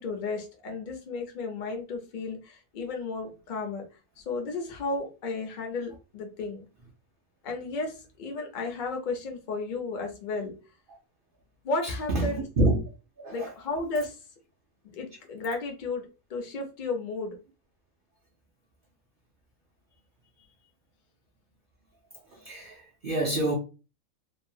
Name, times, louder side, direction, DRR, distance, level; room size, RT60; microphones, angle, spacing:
voice 1, 0.0-3.8 4.2-6.7 7.4-10.5 11.6-12.4 13.3-14.2 14.9-17.4, left 3 dB, 45° left, 0.6 m, -33 dB
voice 2, 11.8-12.8 13.2-13.5 22.3-23.5, right 1 dB, 55° right, 0.6 m, -27 dB
2.8 x 2.3 x 2.7 m
omnidirectional pair, 1.6 m